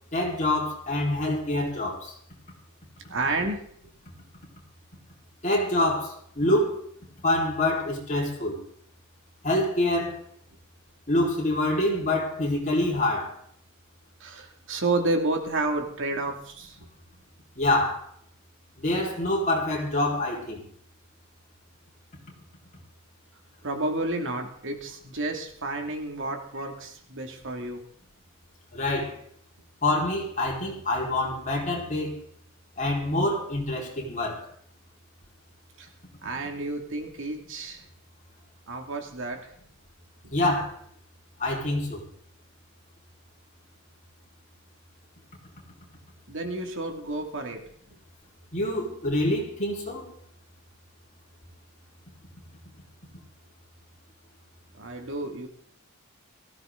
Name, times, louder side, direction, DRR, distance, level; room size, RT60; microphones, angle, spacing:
voice 1, 0.1-2.1 5.4-6.8 7.2-8.6 9.4-10.2 11.1-13.3 17.6-18.0 18.8-20.6 28.7-29.1 29.8-32.2 32.8-34.4 40.3-40.8 41.4-42.0 48.5-50.1, left 1 dB, 35° left, -2 dB, 4.8 m, -26 dB
voice 2, 3.1-3.6 14.2-16.8 23.6-27.8 35.8-35.9 36.2-37.8 38.7-39.4 46.3-47.6 54.8-55.5, right 2 dB, 60° right, 4 dB, 2.7 m, -30 dB
18.5 x 15.0 x 4.0 m, 0.63 s
head